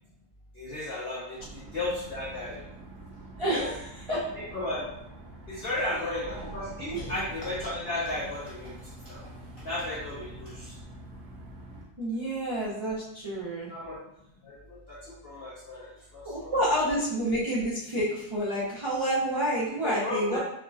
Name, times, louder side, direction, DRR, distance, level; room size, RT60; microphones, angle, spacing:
voice 1, 0.5-2.6 3.5-3.7 4.3-4.9 5.5-8.8 9.1-9.2 9.6-10.8 13.7-14.0 14.4-16.5 19.8-20.4, left 2 dB, 65° left, -6 dB, 0.5 m, -34 dB
sound 1, 1.4-11.9, right 2 dB, 80° right, 1.4 m, -45 dB
voice 2, 3.4-4.2 6.9-7.1 12.0-13.7 16.2-20.4, right 1 dB, 50° right, -8 dB, 0.3 m, -29 dB
4.5 x 2.5 x 2.4 m, 0.82 s
omnidirectional pair, 1.7 m